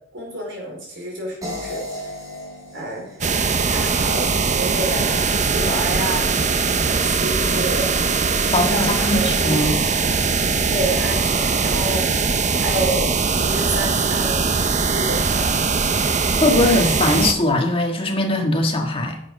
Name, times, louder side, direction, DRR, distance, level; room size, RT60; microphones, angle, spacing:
voice 1, 0.1-2.1 2.7-3.2 3.6-8.2 8.5-9.7 10.7-14.5 14.9-15.7, right 1 dB, 60° right, -2 dB, 4.6 m, -29 dB
sound 1, 1.4-4.5, left 1 dB, 15° right, 3.6 m, -35 dB
sound 2, 3.2-17.3, right 4 dB, 35° right, 0.7 m, -21 dB
voice 2, 8.5-9.8 16.4-19.2, left 1 dB, 25° left, 3 dB, 1.6 m, -20 dB
10.0 x 7.5 x 5.3 m, 0.72 s
head